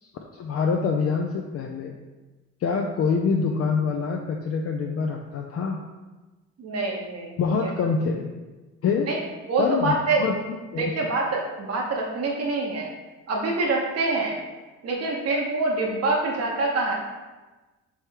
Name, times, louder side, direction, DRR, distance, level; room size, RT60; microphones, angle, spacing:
voice 1, 0.0-2.0 2.6-5.8 7.4-8.3 8.8-9.1 9.6-10.3 10.7-10.9, left 5 dB, 50° left, 2 dB, 0.5 m, -25 dB
voice 2, 6.6-7.7 9.1-9.2 9.5-10.2 10.8-12.9 13.3-14.4 14.8-16.9, right 3 dB, 50° right, -1 dB, 1.0 m, -25 dB
3.4 x 3.2 x 4.5 m, 1.2 s
supercardioid pair, 60°, 31 cm